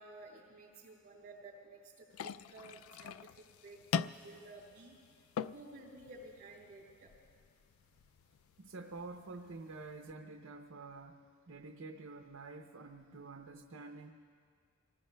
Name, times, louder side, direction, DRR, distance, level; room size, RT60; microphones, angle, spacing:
voice 1, 0.0-5.0 5.5-7.1, right 2 dB, 45° right, -8 dB, 4.0 m, -54 dB
sound 1, 2.1-10.1, left 7 dB, 90° left, 0.3 m, -44 dB
voice 2, 8.6-14.1, right 3 dB, 70° right, 3 dB, 0.6 m, -48 dB
28.5 x 19.0 x 2.2 m, 2.2 s
head